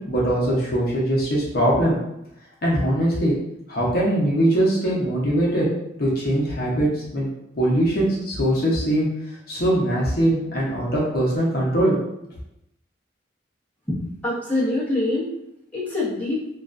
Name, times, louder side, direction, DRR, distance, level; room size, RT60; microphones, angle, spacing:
voice 1, 0.1-2.0 2.6-3.4 3.7-5.7 6.0-7.3 7.5-9.1 9.5-12.0, right 1 dB, 50° left, -5 dB, 0.7 m, -21 dB
voice 2, 13.9-15.3 15.7-16.4, left 2 dB, 10° left, -9 dB, 0.6 m, -25 dB
2.4 x 2.1 x 2.4 m, 0.83 s
head